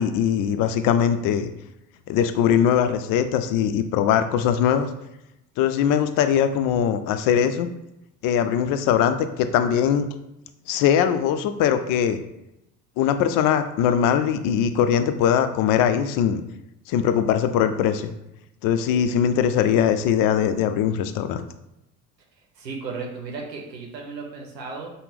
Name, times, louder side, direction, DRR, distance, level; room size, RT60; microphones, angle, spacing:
voice 1, 0.0-1.5 2.1-4.9 5.6-7.7 8.2-10.1 10.7-12.2 13.0-16.4 16.9-18.1 18.6-21.4, left 8 dB, 45° left, 9 dB, 0.5 m, -21 dB
voice 2, 22.6-24.9, right 4 dB, 85° right, 0 dB, 0.7 m, -34 dB
5.6 x 2.0 x 3.5 m, 0.86 s
figure-of-eight pair, 55°, 49 cm